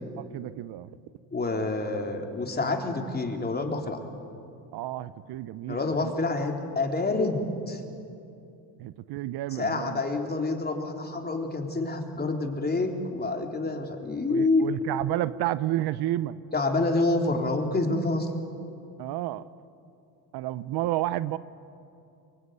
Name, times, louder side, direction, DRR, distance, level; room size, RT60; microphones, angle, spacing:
voice 1, 0.3-0.9 4.7-6.1 8.8-10.0 14.3-16.4 19.0-19.4 20.3-21.4, right 15 dB, 65° right, 16 dB, 0.8 m, -31 dB
voice 2, 1.3-4.0 5.7-7.8 9.5-14.6 16.5-18.3, left 3 dB, 20° left, 3 dB, 3.8 m, -27 dB
24.0 x 23.5 x 9.5 m, 2.6 s
supercardioid pair, 95°, 43 cm